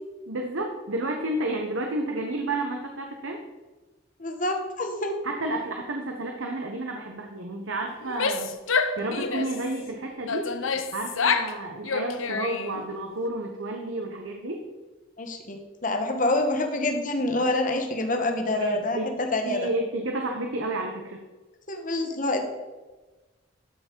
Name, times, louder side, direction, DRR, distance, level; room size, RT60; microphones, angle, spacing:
voice 1, 0.3-3.5 5.2-8.6 9.0-10.5 10.9-14.6 18.5-21.2, right 2 dB, 75° right, 2 dB, 1.0 m, -31 dB
voice 2, 4.2-5.1 15.2-19.7 21.7-22.4, left 2 dB, 40° left, 5 dB, 1.2 m, -27 dB
Female speech woman speaking / Yell, 8.0-9.6 10.3-11.5 11.8-12.8, left 5 dB, 85° left, 0.8 m, -27 dB
12.5 x 5.8 x 4.6 m, 1.2 s
head